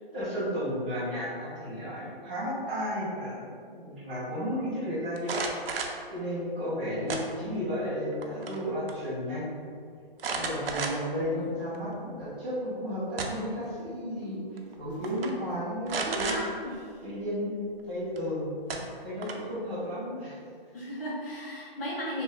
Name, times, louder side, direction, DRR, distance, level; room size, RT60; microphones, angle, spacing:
voice 1, 0.1-3.4 3.7-5.5 6.1-9.5 10.3-14.4 14.8-16.4 17.0-17.6 17.8-18.4 19.0-20.4, equal, 10° right, -14 dB, 0.4 m, -33 dB
sound 1, 5.2-6.0 7.1-7.7 8.1-8.6 8.9-9.0 10.2-11.2 11.7-11.8 12.9-13.6 14.6-14.7 15.0-15.3 15.9-16.4 18.2-18.3 18.7-19.5, right 4 dB, 70° right, 0.5 m, -33 dB
sound 2, 11.2-12.3 13.3-13.7 14.3-14.4 14.7-15.2 15.4-15.6 16.1-16.8, left 4 dB, 30° left, 0.6 m, -47 dB
voice 2, 16.0-16.9 20.7-22.2, equal, 70° left, -5 dB, 1.3 m, -35 dB
2.9 x 2.0 x 3.9 m, 2.2 s
hypercardioid pair, 170°, 29 cm